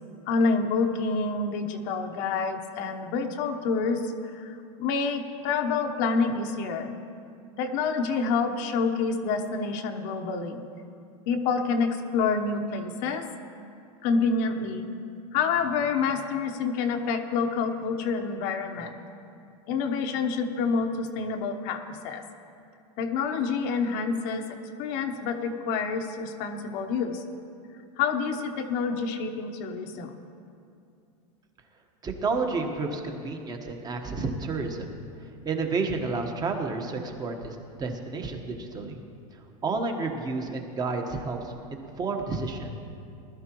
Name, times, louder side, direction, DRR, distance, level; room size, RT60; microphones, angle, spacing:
voice 1, 0.3-6.9 7.6-10.6 11.3-13.2 14.0-14.9 15.3-19.0 19.7-22.2 23.0-27.2 28.0-30.2, left 4 dB, 50° left, 4 dB, 1.0 m, -28 dB
voice 2, 32.0-34.9 35.4-39.0 39.6-42.7, right 3 dB, 20° right, 4 dB, 1.3 m, -30 dB
19.5 x 12.0 x 3.0 m, 2.5 s
supercardioid pair, 135°, 19 cm